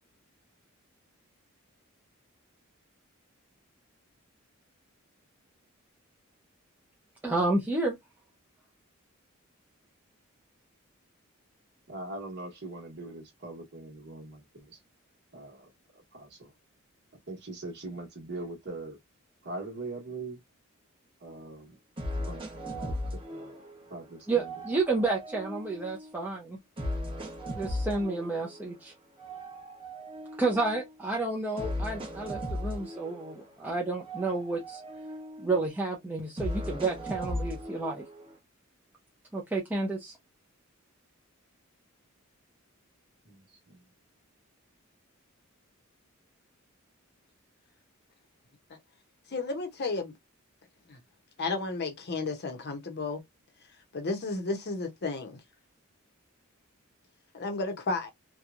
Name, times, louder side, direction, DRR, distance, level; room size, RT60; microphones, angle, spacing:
voice 1, 7.2-7.9 24.3-26.6 27.5-28.9 30.4-34.8 35.4-38.0 39.3-40.2, right 3 dB, 10° right, 0.5 m, -30 dB
voice 2, 11.9-14.8 15.3-16.5 17.3-19.0 19.4-20.4 21.2-21.8 22.1-23.6 23.9-24.5 43.2-43.8, right 2 dB, 55° right, 1.1 m, -42 dB
sound 1, 21.3-21.4 22.0-24.0 24.4-26.2 26.8-28.7 29.2-31.0 31.6-33.7 34.0-35.8 36.4-38.4, equal, 25° right, 0.9 m, -37 dB
voice 3, 49.3-50.1 50.9-51.0 51.4-53.2 53.9-55.4 57.3-58.1, left 3 dB, 50° left, 0.7 m, -33 dB
2.9 x 2.2 x 2.4 m
head